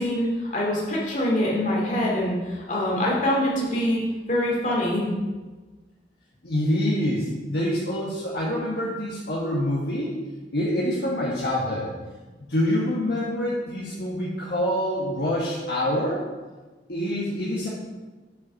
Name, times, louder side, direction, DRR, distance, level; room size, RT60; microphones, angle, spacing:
voice 1, 0.0-4.0 4.3-5.1, left 1 dB, 45° left, -4 dB, 2.4 m, -24 dB
voice 2, 6.4-10.2 10.5-11.9 12.4-16.2 16.9-17.7, left 1 dB, 60° left, -6 dB, 1.5 m, -26 dB
8.2 x 5.5 x 5.7 m, 1.3 s
head